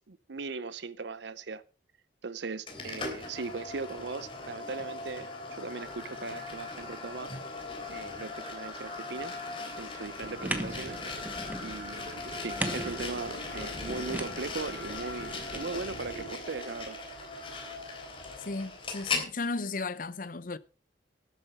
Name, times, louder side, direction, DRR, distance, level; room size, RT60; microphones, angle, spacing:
voice 1, 0.1-1.6 2.2-7.3 7.9-9.3 9.8-11.0 11.6-12.1 12.4-17.0, right 4 dB, 75° right, 0.7 m, -39 dB
sound 1, 2.7-19.3, left 3 dB, 30° left, 3.5 m, -39 dB
sound 2, 10.2-16.4, right 2 dB, 55° right, 1.0 m, -45 dB
sound 3, 10.4-15.6, right 1 dB, 10° right, 1.2 m, -39 dB
voice 2, 18.4-20.6, left 3 dB, 50° left, 0.7 m, -35 dB
13.0 x 9.3 x 5.4 m
head